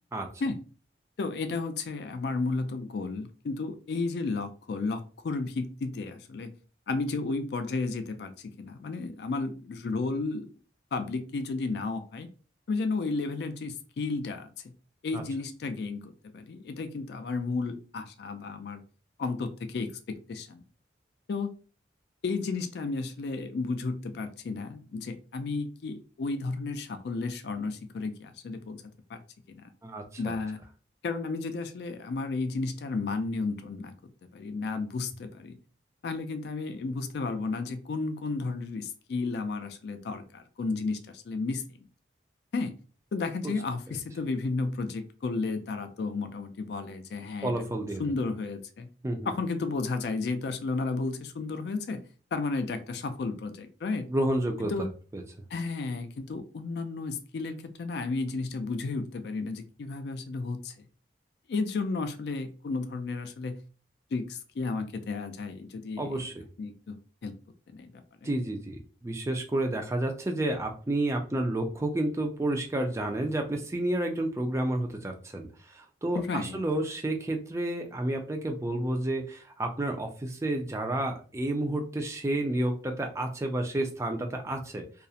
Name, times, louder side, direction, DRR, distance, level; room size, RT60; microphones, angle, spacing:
voice 1, 1.2-6.5 6.9-10.5 10.9-12.3 12.7-14.5 15.0-18.8 19.2-20.6 21.3-21.5 22.2-28.8 29.1-29.2 29.5-29.7 30.2-30.6 31.0-33.9 34.3-35.6 36.0-41.6 42.5-42.8 43.1-47.5 48.0-48.9 49.3-52.0 52.3-54.1 54.6-54.9 55.5-60.7 61.5-63.6 64.1-66.2 66.6-67.3 67.7-67.9 68.2-68.3 76.1-76.6, left 3 dB, 65° left, 0.3 m, -33 dB
voice 2, 29.8-30.3 43.4-43.5 47.4-48.0 49.0-49.3 54.1-54.9 55.1-55.2 66.0-66.3 68.2-84.8, right 1 dB, 15° right, 0.3 m, -30 dB
2.3 x 2.0 x 2.7 m
head